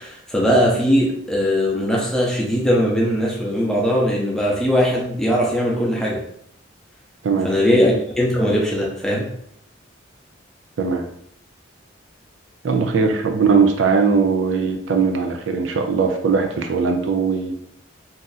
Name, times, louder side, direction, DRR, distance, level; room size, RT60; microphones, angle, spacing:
voice 1, 0.0-6.2 7.4-9.3, equal, 5° left, -4 dB, 0.6 m, -20 dB
voice 2, 12.6-17.5, right 5 dB, 75° right, 4 dB, 0.4 m, -19 dB
2.7 x 2.4 x 3.9 m, 0.70 s
head